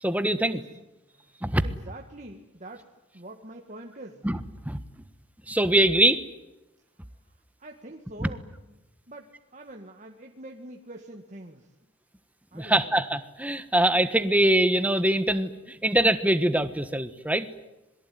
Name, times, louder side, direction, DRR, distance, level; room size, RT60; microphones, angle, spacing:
voice 1, 0.0-0.6 1.4-1.6 4.2-4.4 4.6-4.8 5.5-6.2 8.2-8.3 12.5-17.5, right 1 dB, 10° right, 11 dB, 1.4 m, -23 dB
voice 2, 0.5-0.8 1.1-1.4 1.6-2.9 3.1-4.3 7.6-11.7 12.5-13.0, right 1 dB, 35° right, 2 dB, 1.9 m, -45 dB
26.5 x 22.5 x 9.5 m, 0.99 s
head